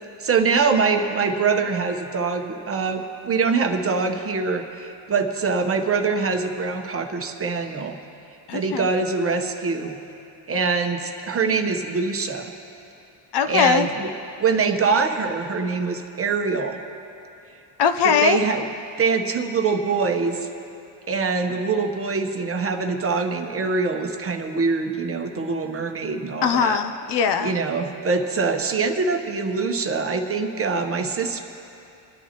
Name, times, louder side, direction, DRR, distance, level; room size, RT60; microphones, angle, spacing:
voice 1, 0.2-8.0 8.5-10.0 10.5-12.5 13.5-14.1 14.4-16.8 18.2-18.6 19.0-20.5 21.1-26.8 27.4-31.4, right 4 dB, 30° right, 4 dB, 1.0 m, -24 dB
voice 2, 8.5-8.9 13.3-13.9 17.8-18.4 26.4-27.5, left 7 dB, 55° left, 8 dB, 0.7 m, -20 dB
28.0 x 9.9 x 3.0 m, 2.7 s
cardioid pair, 125°, 49 cm